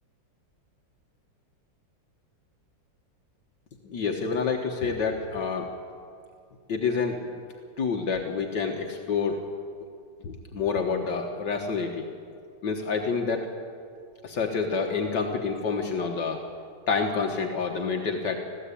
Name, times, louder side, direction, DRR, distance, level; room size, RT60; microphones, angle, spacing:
voice 1, 3.8-5.7 6.7-7.4 7.8-9.4 10.2-12.1 12.6-13.5 14.2-16.4 16.9-18.4, left 5 dB, 70° left, 2 dB, 1.8 m, -28 dB
20.5 x 15.5 x 8.4 m, 2.3 s
omnidirectional pair, 2.0 m